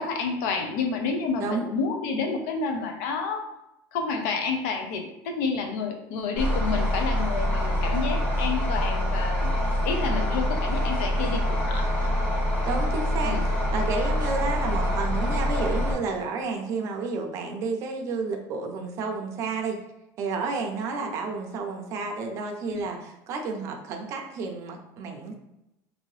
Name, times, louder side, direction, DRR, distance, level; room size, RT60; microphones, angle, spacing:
voice 1, 0.0-3.5 3.9-9.5 9.8-11.9 13.2-13.5 22.7-22.8, left 4 dB, 65° left, 5 dB, 0.6 m, -29 dB
voice 2, 1.4-1.7 12.7-19.8 20.2-25.3, right 4 dB, 35° right, 2 dB, 0.5 m, -31 dB
sound 1, 6.4-15.9, equal, 15° left, 0.9 m, -25 dB
2.8 x 2.6 x 3.1 m, 0.91 s
cardioid pair, 175°, 9 cm